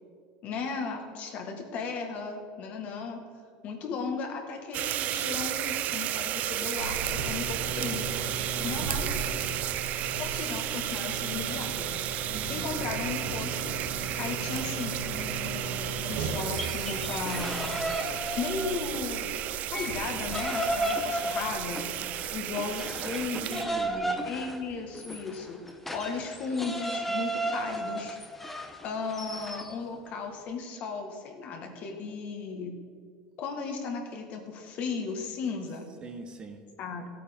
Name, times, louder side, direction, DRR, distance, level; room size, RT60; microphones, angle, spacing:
voice 1, 0.4-3.2 3.6-8.1 8.6-9.2 10.1-11.9 12.5-13.8 14.2-17.8 18.4-19.3 19.7-21.8 22.3-23.6 24.2-25.6 25.9-28.2 28.8-32.8 33.4-35.9 36.8-37.1, left 4 dB, 45° left, 3 dB, 1.6 m, -36 dB
sound 1, 4.7-23.6, right 13 dB, 40° right, 0.4 m, -33 dB
sound 2, 6.8-24.0, right 3 dB, 85° right, 2.2 m, -38 dB
voice 2, 8.5-8.9 12.3-12.7 21.8-22.1 22.5-24.2 36.0-36.6, right 4 dB, 25° right, 6 dB, 0.8 m, -42 dB
sound 3, 16.5-19.1 19.5-29.7, right 1 dB, 5° left, 0.7 m, -34 dB
15.0 x 8.5 x 3.6 m, 2.2 s
supercardioid pair, 145°, 4 cm